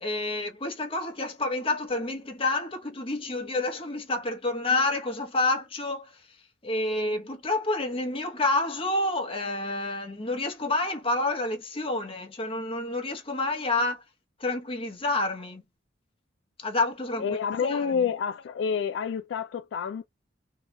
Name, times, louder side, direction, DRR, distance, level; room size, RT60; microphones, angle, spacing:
voice 1, 0.0-6.2 6.6-14.0 14.4-15.6 16.6-17.3 17.6-18.1, left 2 dB, 30° left, 0.8 m, -29 dB
voice 2, 17.2-20.1, left 6 dB, 75° left, 0.3 m, -28 dB
2.8 x 2.3 x 2.9 m
head